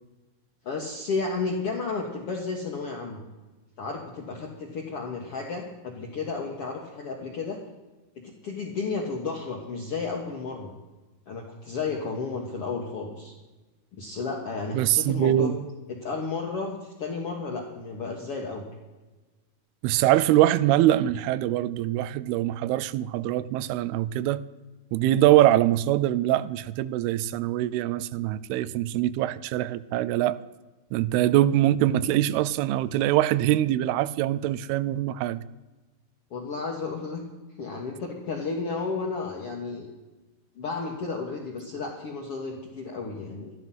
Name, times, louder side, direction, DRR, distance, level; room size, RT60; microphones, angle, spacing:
voice 1, 0.6-3.2 3.8-7.6 8.2-10.7 11.3-13.3 13.9-15.5 15.9-18.7 36.3-37.2 37.6-39.9 40.5-43.5, left 4 dB, 65° left, 1.5 m, -32 dB
voice 2, 14.7-15.6 19.8-24.4 24.9-30.4 30.9-35.4, right 13 dB, 85° right, 2.5 m, -23 dB
12.5 x 12.0 x 5.6 m
omnidirectional pair, 4.5 m